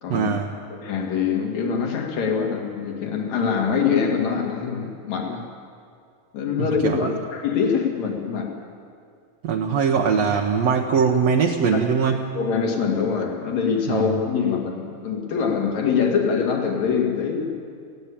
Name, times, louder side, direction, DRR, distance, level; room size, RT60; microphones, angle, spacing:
voice 1, 0.1-0.5 6.6-7.1 9.4-12.2 13.9-14.2, right 6 dB, 65° right, 2 dB, 1.9 m, -21 dB
voice 2, 0.7-5.5 6.3-8.6 11.7-11.8 12.4-17.7, left 6 dB, 65° left, 2 dB, 3.3 m, -24 dB
18.5 x 16.5 x 8.6 m, 2.2 s
omnidirectional pair, 3.6 m